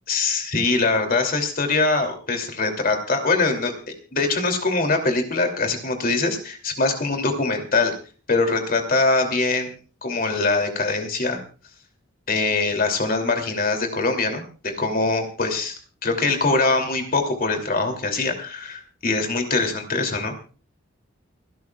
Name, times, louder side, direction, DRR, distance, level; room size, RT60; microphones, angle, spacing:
voice 1, 0.1-3.7 4.1-7.9 8.3-9.7 10.0-11.4 12.3-15.8 16.0-20.3, left 3 dB, 45° left, 5 dB, 2.8 m, -23 dB
29.0 x 12.0 x 2.4 m, 0.38 s
head